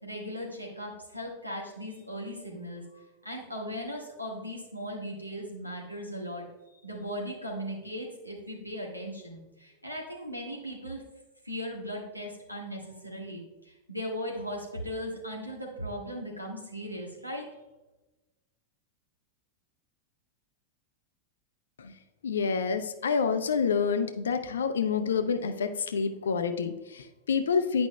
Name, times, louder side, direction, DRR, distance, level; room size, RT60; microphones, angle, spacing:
voice 1, 0.0-6.4 6.8-11.0 11.4-17.5, equal, 90° right, -1 dB, 1.5 m, -38 dB
voice 2, 22.2-27.9, left 5 dB, 65° left, 8 dB, 0.5 m, -28 dB
10.0 x 5.1 x 2.2 m, 1.0 s
figure-of-eight pair, 90°, 0 cm